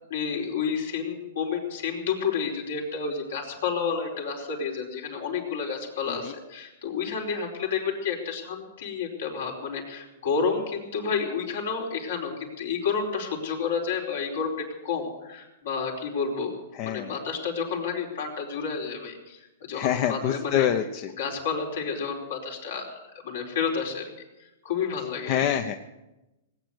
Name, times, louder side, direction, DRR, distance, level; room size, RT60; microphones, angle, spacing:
voice 1, 0.1-16.5 16.8-20.7 21.2-24.1 24.6-25.4, left 6 dB, 75° left, 0 dB, 4.8 m, -30 dB
voice 2, 16.8-17.1 19.7-21.1 25.3-25.8, left 10 dB, 45° left, 7 dB, 0.9 m, -26 dB
19.0 x 9.2 x 8.0 m, 1.0 s
hypercardioid pair, 125°, 0 cm